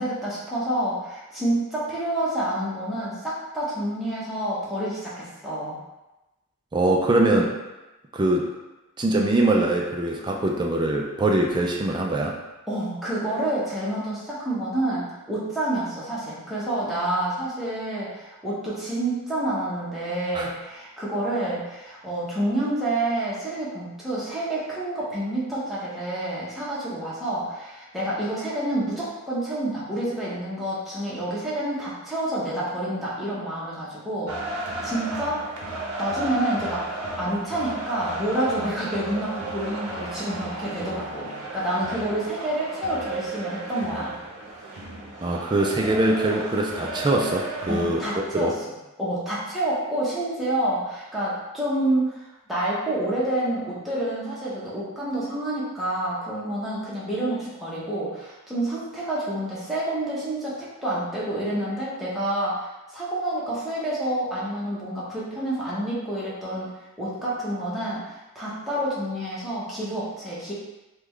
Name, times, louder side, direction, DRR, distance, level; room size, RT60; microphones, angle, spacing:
voice 1, 0.0-5.8 12.7-34.6 34.8-35.5 36.0-36.8 37.2-44.1 47.7-48.7 49.0-52.2 52.5-66.7 67.0-68.0 68.3-70.5, right 1 dB, ahead, -9 dB, 0.9 m, -28 dB
voice 2, 6.7-7.6 8.1-8.5 9.0-12.4 20.3-20.5 45.2-48.5, right 2 dB, 20° right, 0 dB, 0.3 m, -23 dB
sound 1, 34.3-48.3, right 2 dB, 90° right, 0.7 m, -34 dB
3.6 x 2.3 x 3.1 m, 1.0 s
head